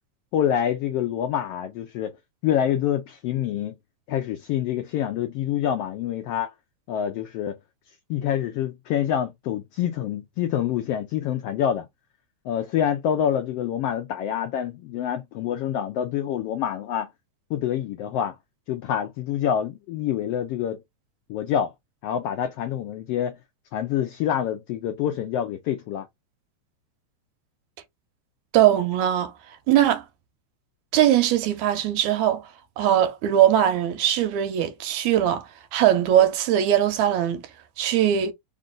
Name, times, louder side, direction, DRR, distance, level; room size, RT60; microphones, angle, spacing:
voice 1, 0.3-2.2 2.4-3.7 4.1-6.5 6.9-7.6 8.1-11.8 12.4-17.1 17.5-18.3 18.7-20.8 21.3-21.7 22.0-23.4 23.7-26.1, left 10 dB, 85° left, 1.3 m, -26 dB
voice 2, 28.5-29.3 29.7-30.0 30.9-32.4 32.8-35.5 35.7-37.4 37.8-38.3, right 11 dB, 80° right, 2.0 m, -20 dB
4.5 x 2.5 x 3.7 m
omnidirectional pair, 3.4 m